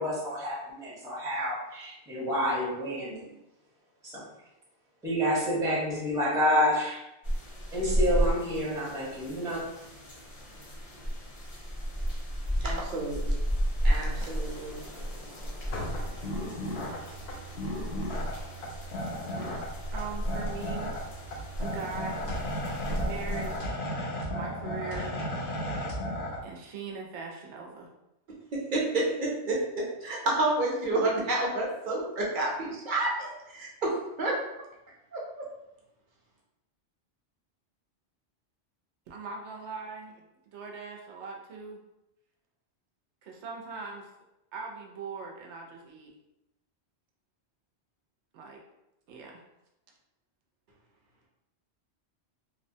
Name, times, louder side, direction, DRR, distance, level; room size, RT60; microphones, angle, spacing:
voice 1, 0.0-3.2 4.0-4.3 5.0-7.0 7.7-9.6, equal, 5° right, -7 dB, 0.6 m, -29 dB
sound 1, 7.2-23.6, equal, 40° left, 0.6 m, -33 dB
voice 2, 12.6-13.3 13.8-14.7 28.7-29.6 30.0-33.9 34.2-34.4 35.1-35.2, right 2 dB, 50° right, -3 dB, 0.8 m, -29 dB
sound 2, 15.7-26.4, equal, 70° left, 0.8 m, -35 dB
voice 3, 19.9-21.0 21.6-22.4 23.0-23.8 24.3-25.2 26.4-27.9 39.1-40.1 40.5-41.8 43.2-44.1 44.5-46.1 48.3-48.6 49.1-49.4, right 4 dB, 85° right, 0 dB, 0.9 m, -40 dB
2.9 x 2.1 x 2.6 m, 0.89 s
omnidirectional pair, 1.1 m